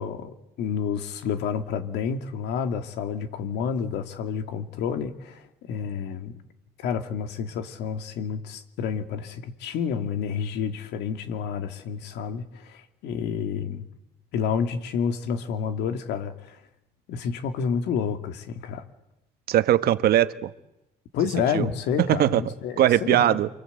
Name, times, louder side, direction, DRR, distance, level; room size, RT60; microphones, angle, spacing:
voice 1, 0.0-6.4 6.8-13.8 14.3-16.6 17.1-18.8 21.1-23.4, left 7 dB, 80° left, 2.5 m, -29 dB
voice 2, 19.5-20.5 21.5-21.7 22.1-22.4 22.8-23.5, right 12 dB, 65° right, 1.3 m, -20 dB
29.5 x 24.0 x 8.2 m
cardioid pair, 110°, 17 cm